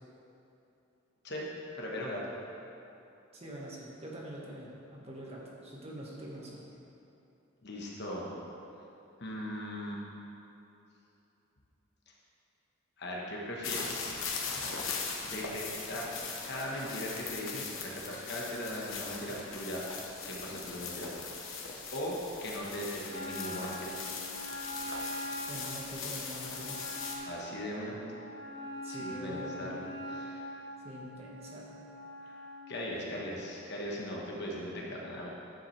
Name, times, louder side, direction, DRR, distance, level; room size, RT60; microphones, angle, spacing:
voice 1, 1.7-2.2 7.6-8.3 9.2-10.0 13.0-14.2 15.2-15.6 15.9-16.1 16.4-21.1 21.9-22.1 22.4-24.0 27.2-28.0 28.9-30.6 32.2-32.4 32.7-35.3, equal, 55° left, -3 dB, 1.2 m, -39 dB
voice 2, 3.3-6.7 25.5-26.8 28.8-29.9 30.8-31.8 33.0-33.2, right 1 dB, 30° right, -4 dB, 1.4 m, -44 dB
sound 1, 13.6-27.2, left 5 dB, 80° left, 1.0 m, -40 dB
Wind instrument woodwind instrument, 23.1-32.7, equal, 60° right, 1.2 m, -43 dB
10.0 x 7.3 x 3.3 m, 2.9 s
head